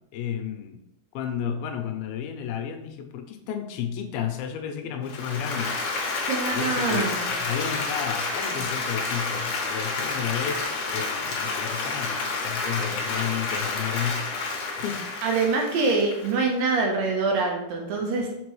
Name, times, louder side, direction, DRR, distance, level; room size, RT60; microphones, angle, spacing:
voice 1, 0.1-0.8 1.1-5.8 6.5-7.1 7.4-14.4 14.7-15.1, left 8 dB, 80° left, 6 dB, 2.5 m, -32 dB
Applause, 5.0-16.8, left 3 dB, 60° left, 1.9 m, -29 dB
voice 2, 6.3-7.3 15.2-18.3, right 4 dB, 75° right, 0 dB, 2.5 m, -25 dB
5.9 x 5.3 x 3.1 m, 0.84 s
omnidirectional pair, 4.4 m